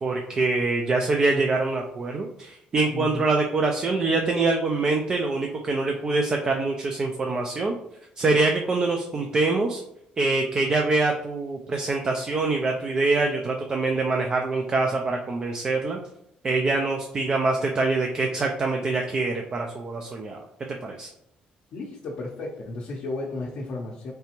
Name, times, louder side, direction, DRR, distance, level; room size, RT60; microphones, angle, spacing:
voice 1, 0.0-7.8 8.2-9.8 10.2-16.0 16.4-20.4 20.8-21.1, right 3 dB, 30° right, 1 dB, 0.3 m, -24 dB
voice 2, 2.9-3.2 21.7-24.1, left 2 dB, 50° left, -3 dB, 0.6 m, -33 dB
3.8 x 3.3 x 2.9 m, 0.76 s
cardioid pair, 155°, 3 cm